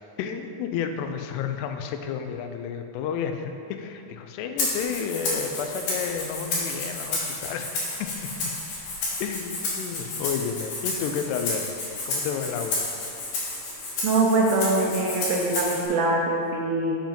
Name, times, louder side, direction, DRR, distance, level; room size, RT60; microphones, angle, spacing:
voice 1, 0.2-8.3 9.2-11.7 12.1-12.8, left 7 dB, 85° left, 6 dB, 2.7 m, -31 dB
Rattle (instrument), 4.6-15.9, left 2 dB, 60° left, 2.9 m, -31 dB
voice 2, 14.0-17.0, right 2 dB, 80° right, -2 dB, 2.2 m, -23 dB
7.3 x 7.2 x 3.6 m, 2.5 s
omnidirectional pair, 4.8 m